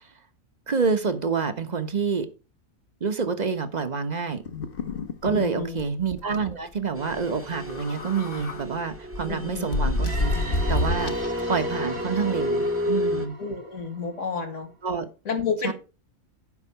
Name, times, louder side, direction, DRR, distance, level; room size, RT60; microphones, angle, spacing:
voice 1, 0.7-2.3 3.0-4.4 5.2-10.3 10.7-11.1 11.5-13.3 14.8-15.1 15.6-15.7, right 5 dB, 30° right, 1.2 m, -27 dB
sound 1, 4.5-5.5 5.8-5.9 6.2-6.4 7.6-8.6 9.1-11.4, left 2 dB, 40° left, 1.2 m, -28 dB
voice 2, 5.3-5.8 9.2-9.7 13.4-14.7 15.3-15.7, left 5 dB, 60° left, 2.3 m, -30 dB
sound 2, 7.0-13.3, left 1 dB, 10° right, 1.0 m, -31 dB
sound 3, 10.0-14.6, right 3 dB, 70° right, 2.5 m, -39 dB
11.0 x 5.8 x 5.7 m
omnidirectional pair, 1.5 m